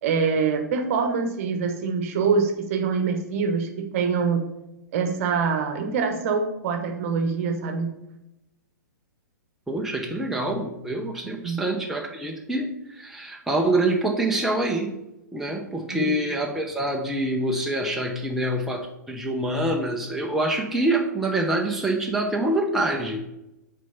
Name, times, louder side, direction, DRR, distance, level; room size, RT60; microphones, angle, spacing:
voice 1, 0.0-4.4 4.9-7.9 11.4-11.6 15.9-16.2, right 5 dB, 45° right, 7 dB, 1.1 m, -24 dB
voice 2, 9.7-14.9 15.3-23.3, right 1 dB, 5° right, 0 dB, 0.8 m, -26 dB
6.1 x 4.4 x 5.7 m, 0.90 s
figure-of-eight pair, 110°, 10 cm